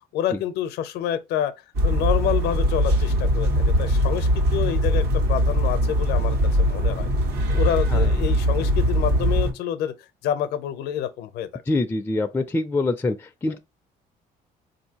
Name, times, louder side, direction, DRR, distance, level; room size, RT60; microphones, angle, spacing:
voice 1, 0.1-1.5 1.8-7.1 7.5-9.9 10.2-11.6, left 10 dB, 85° left, 0.6 m, -28 dB
sound 1, 1.7-9.5, equal, 75° right, 1.3 m, -21 dB
voice 2, 11.7-13.6, left 2 dB, 10° left, 0.3 m, -25 dB
4.2 x 2.7 x 2.8 m
cardioid pair, 110°, 17 cm